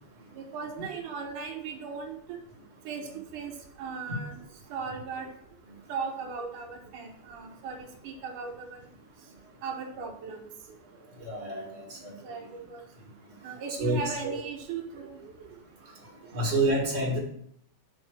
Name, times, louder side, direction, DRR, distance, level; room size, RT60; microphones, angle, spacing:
voice 1, 0.4-2.2 2.9-4.4 4.7-5.3 5.9-8.8 9.6-10.5 11.1-11.2 12.2-12.8 13.4-15.5, right 5 dB, 85° right, 1 dB, 1.8 m, -38 dB
voice 2, 11.2-12.1 13.8-14.0 14.2-14.3 16.3-17.2, right 2 dB, 55° right, -3 dB, 0.7 m, -28 dB
7.6 x 3.8 x 6.3 m, 0.69 s
omnidirectional pair, 5.0 m